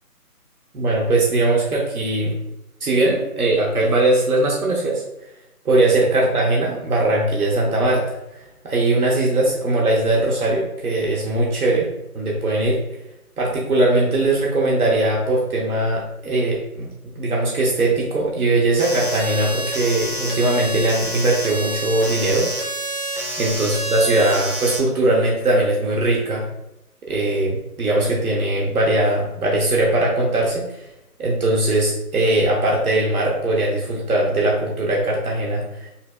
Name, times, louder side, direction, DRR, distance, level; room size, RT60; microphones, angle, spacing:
voice 1, 0.7-2.4 2.8-5.0 5.6-11.9 12.1-12.8 13.4-16.9 17.2-22.5 23.4-26.5 27.1-30.8 31.2-35.9, right 2 dB, 65° right, -2 dB, 0.9 m, -20 dB
sound 1, 18.8-24.8, right 1 dB, 35° right, 0.6 m, -28 dB
5.4 x 2.1 x 2.3 m, 0.89 s
hypercardioid pair, 175°, 46 cm